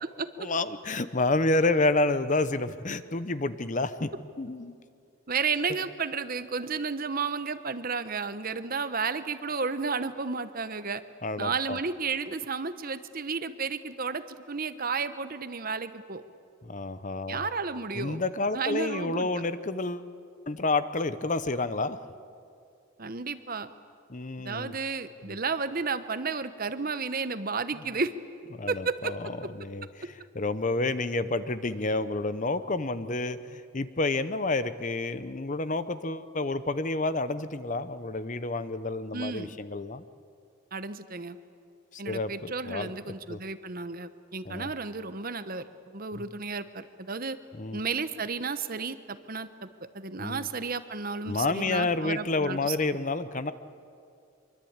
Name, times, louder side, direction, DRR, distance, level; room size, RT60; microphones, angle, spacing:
voice 1, 0.4-4.1 4.4-4.7 11.2-11.8 16.6-17.5 17.9-20.1 20.5-22.0 24.1-24.7 25.3-25.4 28.5-29.3 29.6-40.0 41.9-42.9 43.3-43.4 44.4-44.7 46.1-46.2 47.5-47.8 50.2-50.5 51.3-53.5, left 2 dB, 35° left, 13 dB, 0.8 m, -29 dB
voice 2, 5.3-11.0 11.4-16.2 17.3-18.2 18.5-19.3 23.0-23.7 24.4-28.1 28.7-29.1 39.1-39.6 40.7-41.4 42.0-45.6 45.9-47.4 47.7-49.7 49.9-52.8, right 4 dB, 40° right, 11 dB, 1.0 m, -32 dB
24.5 x 23.5 x 8.8 m, 2.4 s
head